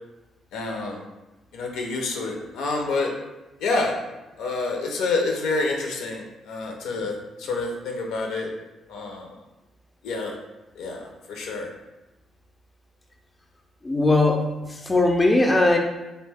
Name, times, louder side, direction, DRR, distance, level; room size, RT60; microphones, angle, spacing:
voice 1, 0.5-1.0 1.5-3.1 3.6-3.9 4.4-8.5 8.9-9.4 10.0-10.3 10.8-11.0 11.3-11.7, left 3 dB, 85° left, 1 dB, 0.5 m, -28 dB
voice 2, 13.8-14.4 14.7-15.8, left 2 dB, 20° left, 2 dB, 0.4 m, -19 dB
2.6 x 2.1 x 3.3 m, 1.0 s
cardioid pair, 90°, 0 cm